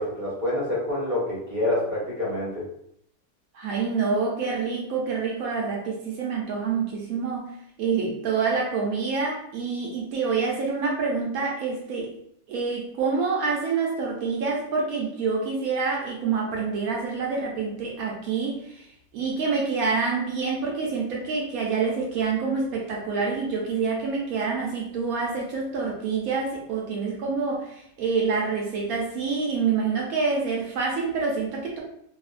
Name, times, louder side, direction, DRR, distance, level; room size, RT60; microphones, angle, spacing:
voice 1, 0.0-2.6, left 1 dB, 15° right, -8 dB, 1.0 m, -27 dB
voice 2, 3.5-7.5 7.8-12.1 12.5-18.8 19.1-31.8, right 4 dB, 75° right, -1 dB, 1.0 m, -27 dB
3.0 x 2.0 x 2.4 m, 0.70 s
omnidirectional pair, 1.6 m